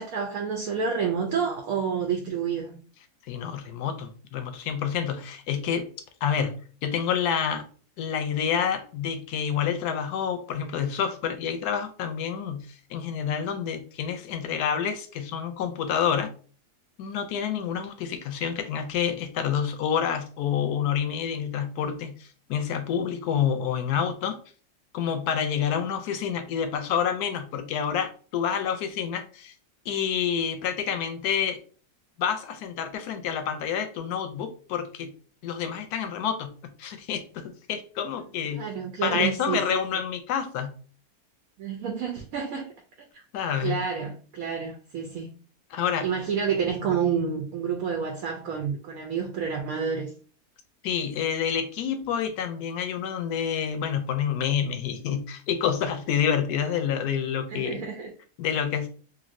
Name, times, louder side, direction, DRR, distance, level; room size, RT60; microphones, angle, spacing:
voice 1, 0.0-2.8 38.6-39.8 41.6-42.6 43.1-43.2 43.6-45.3 46.0-50.1 57.5-58.1, right 6 dB, 70° right, 1.0 m, -29 dB
voice 2, 3.3-5.9 6.2-7.6 8.0-16.3 17.0-24.4 24.9-29.5 29.9-31.6 32.2-35.1 35.4-36.5 36.8-37.2 37.7-38.7 39.0-40.7 43.3-43.8 45.7-46.1 50.8-57.9 58.4-58.9, left 8 dB, 80° left, 1.1 m, -28 dB
3.1 x 2.6 x 2.5 m
omnidirectional pair, 1.7 m